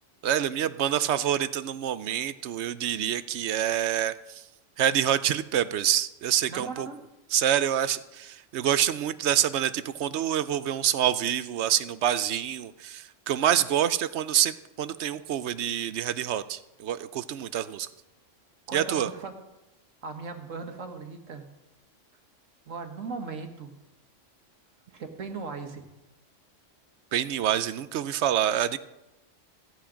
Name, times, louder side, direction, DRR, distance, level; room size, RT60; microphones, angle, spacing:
voice 1, 0.2-4.4 4.8-6.9 7.3-17.9 18.7-19.1 27.1-28.8, right 10 dB, 65° right, 15 dB, 0.8 m, -27 dB
voice 2, 6.5-7.0 18.7-19.3 20.0-21.5 22.7-23.7 24.9-25.8, right 4 dB, 90° right, 6 dB, 1.8 m, -38 dB
16.0 x 8.6 x 5.1 m, 0.94 s
omnidirectional pair, 1.3 m